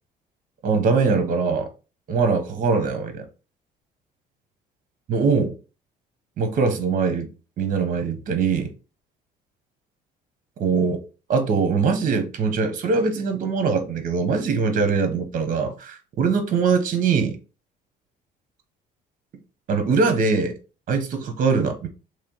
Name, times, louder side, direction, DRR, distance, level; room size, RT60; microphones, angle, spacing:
voice 1, 0.6-1.7 2.1-3.3 5.1-5.6 6.4-7.3 7.6-8.7 10.6-11.0 11.3-17.4 19.7-20.6 20.9-21.9, right 5 dB, 55° right, 1.2 m, -22 dB
3.4 x 3.2 x 4.5 m
cardioid pair, 110°, 17 cm